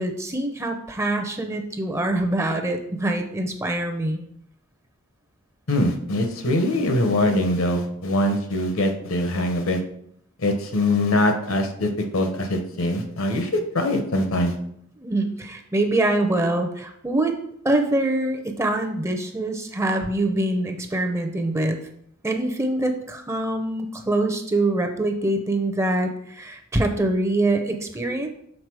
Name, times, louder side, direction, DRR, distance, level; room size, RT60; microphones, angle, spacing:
voice 1, 0.0-4.2 15.0-17.3 17.6-21.8 22.2-28.3, right 2 dB, 15° right, 4 dB, 0.6 m, -24 dB
voice 2, 5.7-9.8 10.4-14.5, left 1 dB, 75° left, 6 dB, 1.0 m, -23 dB
6.5 x 3.9 x 4.7 m, 0.70 s
head